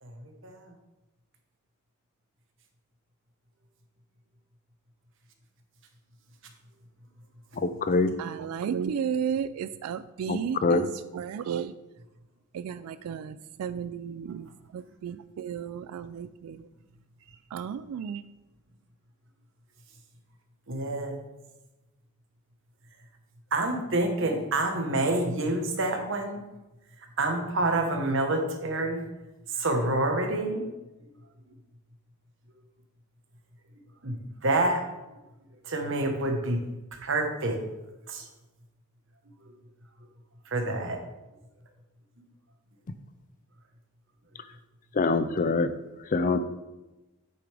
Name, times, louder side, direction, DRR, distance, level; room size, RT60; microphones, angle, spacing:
voice 1, 0.0-0.7 20.7-21.2 23.5-26.4 27.0-29.0 29.5-30.7 34.0-34.9 35.6-36.6 36.9-37.6 38.1-38.3 40.4-41.0, right 2 dB, 55° right, 1.2 m, -28 dB
voice 2, 8.2-11.7 12.5-16.7 17.5-18.2, right 7 dB, 80° right, 0.3 m, -33 dB
voice 3, 10.3-10.9 45.0-45.7 46.1-46.4, left 3 dB, 35° left, 0.4 m, -24 dB
8.7 x 6.8 x 3.4 m
head